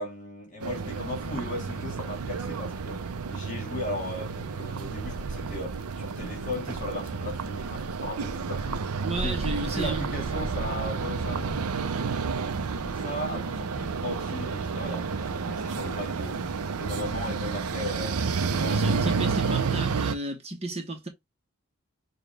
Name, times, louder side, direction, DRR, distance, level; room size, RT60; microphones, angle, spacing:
voice 1, 0.0-11.7 12.7-16.4 16.7-19.6, left 1 dB, 35° left, 2.0 m, -37 dB
sound 1, 0.6-20.1, right 5 dB, 90° right, 0.6 m, -30 dB
voice 2, 9.0-10.1 18.7-21.1, right 2 dB, 30° right, 0.9 m, -33 dB
6.7 x 2.3 x 3.3 m
head